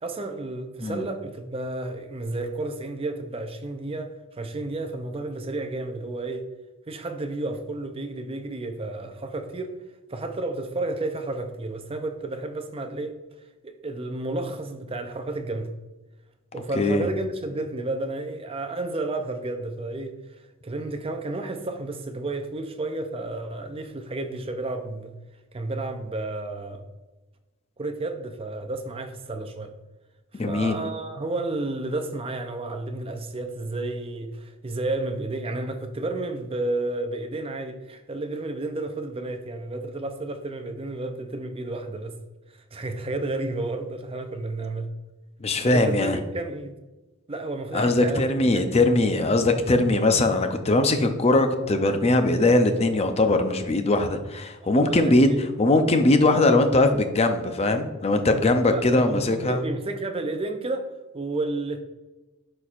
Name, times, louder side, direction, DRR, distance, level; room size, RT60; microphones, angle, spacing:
voice 1, 0.0-6.5 6.9-9.7 10.1-13.2 13.6-15.7 16.5-20.2 20.6-25.1 25.5-26.8 27.8-29.7 30.5-42.2 42.7-44.9 45.6-46.7 47.3-48.2 48.5-48.7 54.6-55.5 58.7-61.8, right 2 dB, 25° right, 0.5 m, -31 dB
voice 2, 16.7-17.1 30.3-30.8 45.4-46.2 47.7-55.3 55.6-59.6, left 2 dB, 30° left, 0.6 m, -21 dB
11.0 x 4.4 x 2.5 m
head